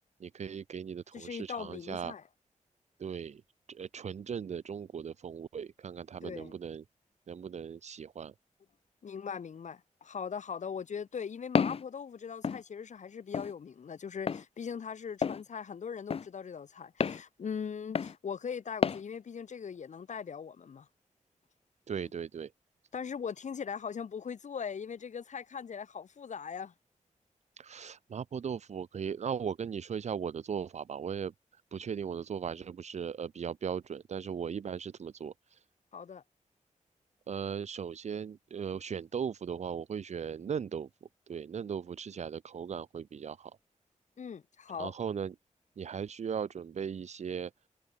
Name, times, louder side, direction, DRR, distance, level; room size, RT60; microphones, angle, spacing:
voice 1, 0.2-2.1 3.0-3.4 3.7-6.8 7.3-8.3 21.9-22.5 27.6-31.3 31.7-35.6 37.3-40.9 41.3-43.5 44.8-45.3 45.8-47.5, right 7 dB, 60° right, 0.7 m, -38 dB
voice 2, 1.1-2.2 6.2-6.6 9.0-20.9 22.9-26.7 35.9-36.2 44.2-44.9, left 6 dB, 65° left, 1.4 m, -40 dB
Walk footsteps, 11.6-11.8 12.4-12.6 13.3-13.5 14.3-14.4 15.2-15.4 16.1-16.3 17.0-17.2 18.0-18.2 18.8-19.0, left 6 dB, 50° left, 0.6 m, -29 dB
wide cardioid pair, 130°, 13 cm